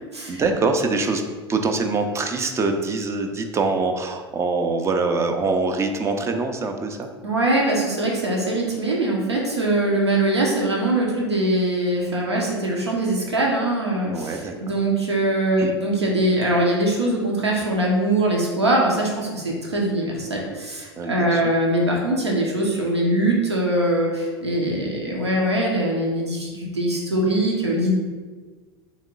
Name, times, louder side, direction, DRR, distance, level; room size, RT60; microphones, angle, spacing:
voice 1, 0.3-1.2 1.5-7.1 14.0-14.6 15.6-15.7 21.0-21.5, right 3 dB, 20° right, 5 dB, 0.4 m, -24 dB
voice 2, 7.2-27.9, right 1 dB, 85° right, -2 dB, 0.8 m, -22 dB
3.5 x 3.1 x 3.7 m, 1.4 s
figure-of-eight pair, 85°, 14 cm